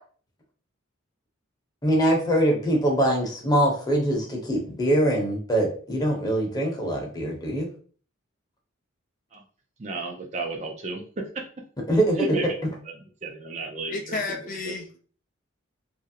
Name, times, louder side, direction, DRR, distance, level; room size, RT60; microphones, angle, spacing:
voice 1, 1.8-7.7 11.9-12.2, right 1 dB, 20° left, -1 dB, 0.9 m, -23 dB
voice 2, 9.8-11.3 12.2-14.8, right 3 dB, 35° right, 2 dB, 0.5 m, -33 dB
voice 3, 13.9-15.0, left 3 dB, 40° left, 3 dB, 0.4 m, -32 dB
3.1 x 2.5 x 2.8 m, 0.42 s
head